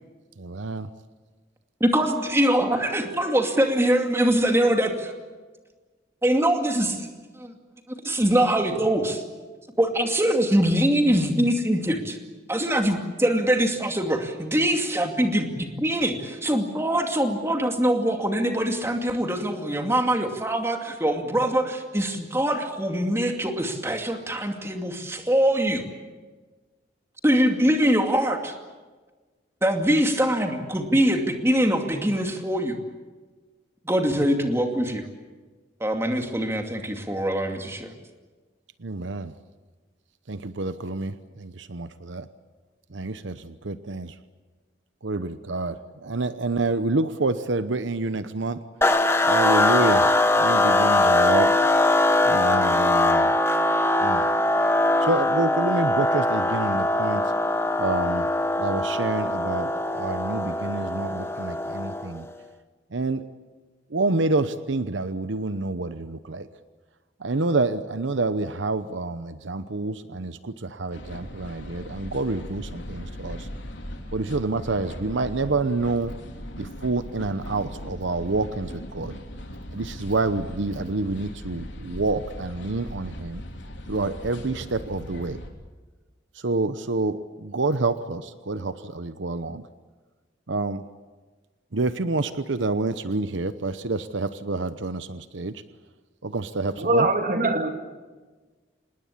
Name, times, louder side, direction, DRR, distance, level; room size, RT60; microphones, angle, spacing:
voice 1, 0.4-0.9 38.8-39.3 40.3-42.3 42.9-44.2 45.0-48.6 49.2-50.1 50.4-51.5 52.3-53.4 54.0-54.3 55.0-57.3 57.8-58.3 58.6-62.3 62.9-63.2 63.9-66.5 67.2-73.5 74.1-76.1 76.6-79.1 79.7-83.4 83.9-85.4 86.3-89.6 90.5-90.8 91.7-95.6 96.2-97.1, right 3 dB, 80° right, 12 dB, 0.9 m, -28 dB
voice 2, 1.8-5.1 6.2-7.1 7.4-7.5 8.0-9.2 9.8-12.2 12.5-25.8 27.2-28.5 29.6-32.8 33.8-35.0 35.8-37.9, right 1 dB, 15° right, 4 dB, 2.4 m, -23 dB
sound 1, 48.8-62.2, left 2 dB, 15° left, 1.1 m, -21 dB
sound 2, 70.9-85.5, equal, 75° left, 3.5 m, -39 dB
voice 3, 96.8-97.7, right 2 dB, 45° right, 6 dB, 2.4 m, -22 dB
26.5 x 20.0 x 8.5 m, 1.3 s
head